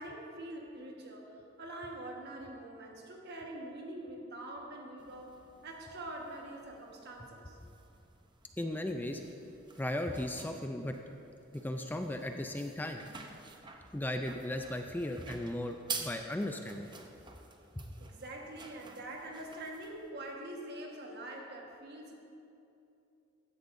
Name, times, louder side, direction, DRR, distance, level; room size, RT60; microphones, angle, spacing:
voice 1, 0.0-7.6 13.6-13.8 18.0-22.1, right 1 dB, 55° right, 0 dB, 1.4 m, -45 dB
sound 1, 5.0-20.1, right 5 dB, 25° right, 0.7 m, -49 dB
voice 2, 8.6-9.2 9.8-10.9 11.5-13.0 13.9-16.9 17.8-17.9, left 1 dB, 10° left, 5 dB, 0.4 m, -36 dB
15.0 x 10.5 x 2.6 m, 2.7 s
head